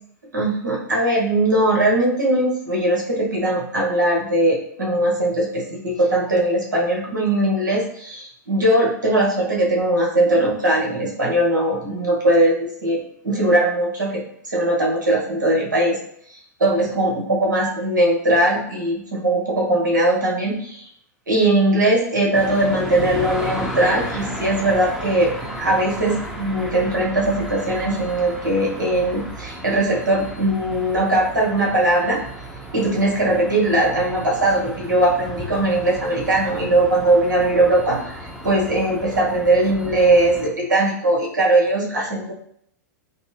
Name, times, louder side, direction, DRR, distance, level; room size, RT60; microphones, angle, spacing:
voice 1, 0.3-14.2 14.5-16.0 16.6-20.9 21.3-25.3 25.6-32.2 32.7-42.3, right 1 dB, 80° right, -2 dB, 1.2 m, -20 dB
sound 1, 22.3-40.5, right 1 dB, 5° right, 0.8 m, -34 dB
5.1 x 2.1 x 3.1 m, 0.67 s
figure-of-eight pair, 95°, 10 cm